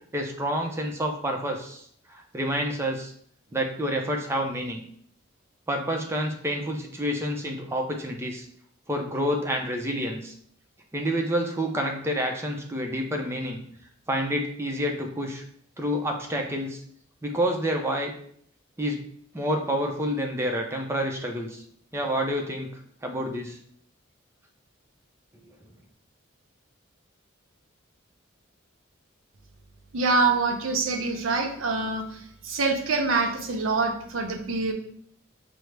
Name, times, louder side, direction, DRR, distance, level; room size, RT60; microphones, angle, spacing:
voice 1, 0.1-1.8 2.1-3.1 3.5-4.8 5.7-8.5 8.9-10.3 10.9-13.6 14.1-15.4 15.8-16.8 17.2-18.1 18.8-19.0 19.3-21.6 21.9-22.7 23.0-23.6, equal, 15° right, 2 dB, 0.5 m, -28 dB
voice 2, 29.9-32.2 32.4-34.7, right 3 dB, 75° right, 4 dB, 0.6 m, -25 dB
5.9 x 2.0 x 3.2 m, 0.63 s
head